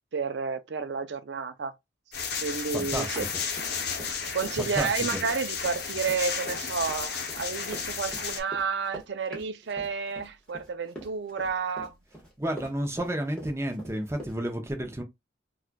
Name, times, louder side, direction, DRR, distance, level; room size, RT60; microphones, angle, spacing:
voice 1, 0.1-1.7 2.4-3.2 4.3-11.9, right 5 dB, 65° right, 0.5 m, -31 dB
sound 1, 2.1-8.4, left 6 dB, 55° left, 0.8 m, -33 dB
Run, 2.7-4.1 4.4-14.4, right 1 dB, 5° left, 1.2 m, -44 dB
voice 2, 2.7-3.1 4.6-4.9 12.4-15.0, right 1 dB, 15° right, 0.7 m, -31 dB
4.3 x 2.4 x 2.2 m
head